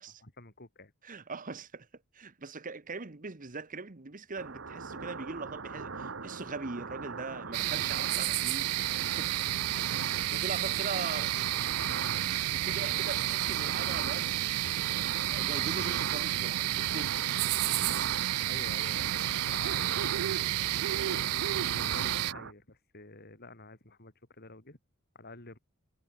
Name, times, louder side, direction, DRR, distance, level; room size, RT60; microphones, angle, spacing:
voice 1, 0.2-0.9 9.5-9.6 10.1-10.8 11.1-11.6 18.4-20.1 21.0-24.8 25.1-25.6, left 2 dB, 45° left, 3.9 m, -49 dB
voice 2, 1.0-1.9 2.1-8.7 9.1-9.4 10.3-11.3 12.5-14.8 15.3-17.3, right 4 dB, 40° right, 1.2 m, -41 dB
sound 1, 4.4-22.5, right 4 dB, 60° right, 1.6 m, -40 dB
sound 2, 7.5-22.3, right 16 dB, 85° right, 0.3 m, -31 dB
head